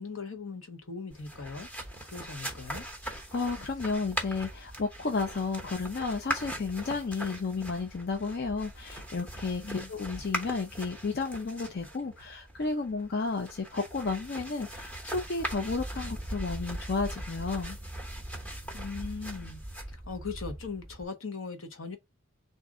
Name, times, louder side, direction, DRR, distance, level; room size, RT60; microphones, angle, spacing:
voice 1, 0.0-1.7 2.0-2.9 9.6-9.9 18.7-19.6 19.9-22.0, left 4 dB, 70° left, 1.0 m, -39 dB
sound 1, 1.1-21.0, right 1 dB, 5° left, 0.9 m, -40 dB
voice 2, 3.0-17.8, left 4 dB, 50° left, 0.5 m, -32 dB
3.7 x 2.6 x 4.6 m
head